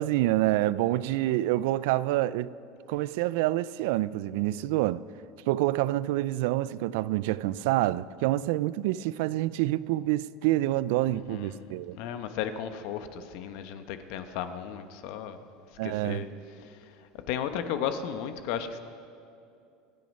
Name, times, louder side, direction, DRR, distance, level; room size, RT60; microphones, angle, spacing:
voice 1, 0.0-2.5 2.9-5.0 5.5-12.0 15.8-16.3, right 16 dB, 75° right, 0.4 m, -27 dB
voice 2, 11.1-11.7 12.0-15.4 15.8-16.3 17.3-18.8, left 8 dB, 65° left, 1.1 m, -34 dB
25.5 x 9.4 x 5.4 m
supercardioid pair, 150°, 0 cm